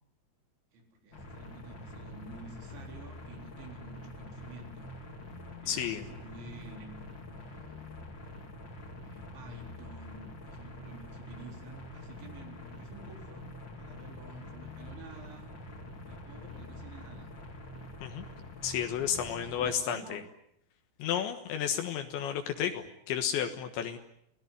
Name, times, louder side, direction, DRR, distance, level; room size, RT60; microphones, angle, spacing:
voice 1, 0.7-4.9 5.4-7.8 9.0-15.6 16.1-17.3 19.2-20.2, right 2 dB, 75° right, 3 dB, 6.3 m, -50 dB
sound 1, 1.1-19.7, left 1 dB, 30° left, 3.0 m, -46 dB
voice 2, 5.7-6.1 18.0-18.3 18.6-20.2 21.0-24.0, left 9 dB, 80° left, 6 dB, 3.6 m, -32 dB
29.0 x 18.0 x 9.8 m, 0.77 s
omnidirectional pair, 5.3 m